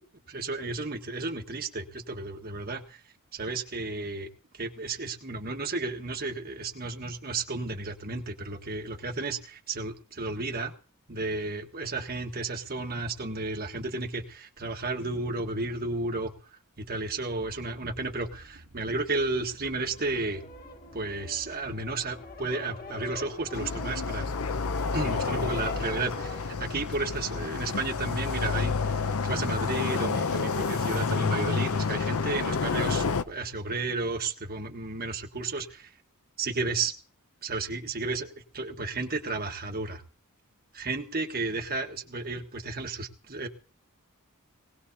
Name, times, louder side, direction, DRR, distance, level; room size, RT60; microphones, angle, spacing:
voice 1, 0.3-3.0 3.3-10.7 11.1-16.3 16.8-20.4 20.9-24.3 24.9-35.9 36.4-36.9 37.4-40.0 40.7-43.5, right 3 dB, 40° right, 5 dB, 1.5 m, -33 dB
sound 1, 17.3-24.4, equal, 75° right, 2.2 m, -53 dB
sound 2, 19.4-26.5, left 2 dB, 40° left, 1.5 m, -43 dB
sound 3, 23.5-33.2, left 4 dB, 75° left, 0.7 m, -29 dB
19.5 x 18.5 x 2.8 m, 0.39 s
head